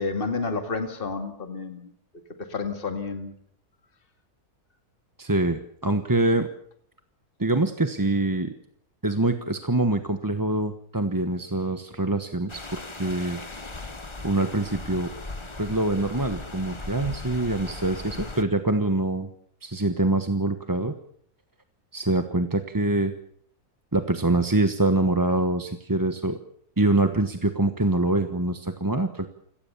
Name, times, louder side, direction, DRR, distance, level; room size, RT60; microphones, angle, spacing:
voice 1, 0.0-1.9 2.5-3.3, left 4 dB, 35° left, 6 dB, 2.5 m, -30 dB
voice 2, 5.2-6.5 7.4-8.6 9.0-13.4 14.2-15.1 15.6-19.3 19.6-20.9 21.9-23.1 23.9-26.4 26.8-29.3, right 2 dB, 15° right, 8 dB, 1.1 m, -24 dB
sound 1, 12.5-18.4, left 2 dB, 20° left, 1.2 m, -38 dB
29.5 x 18.0 x 7.2 m, 0.64 s
omnidirectional pair, 1.6 m